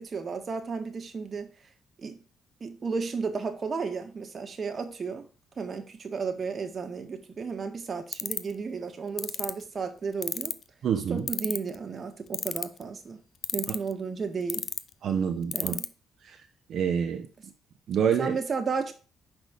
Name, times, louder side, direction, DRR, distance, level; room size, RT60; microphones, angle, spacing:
voice 1, 0.0-1.5 2.0-2.2 2.6-5.3 5.6-10.6 11.1-13.2 13.5-14.7 15.5-15.9 18.2-18.9, right 5 dB, 40° right, 1.6 m, -33 dB
sound 1, 8.1-8.5 9.2-9.5 10.2-10.6 11.3-11.8 12.3-12.8 13.4-13.9 14.5-14.8 15.5-15.9, left 7 dB, 55° left, 0.6 m, -29 dB
voice 2, 10.8-11.2 15.0-15.8 16.7-17.2 17.9-18.4, right 8 dB, 65° right, 0.9 m, -26 dB
6.0 x 5.3 x 6.5 m
cardioid pair, 90°, 0 cm